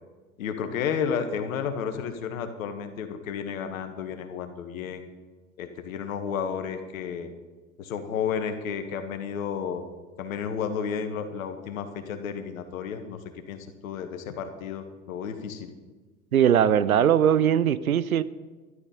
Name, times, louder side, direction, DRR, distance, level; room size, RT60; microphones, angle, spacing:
voice 1, 0.4-5.1 5.6-7.3 7.8-9.8 10.2-13.2 13.5-15.7, left 7 dB, 70° left, 7 dB, 1.5 m, -32 dB
voice 2, 16.3-18.2, right 9 dB, 90° right, 17 dB, 0.6 m, -20 dB
12.5 x 11.5 x 5.0 m, 1.3 s
figure-of-eight pair, 75°, 41 cm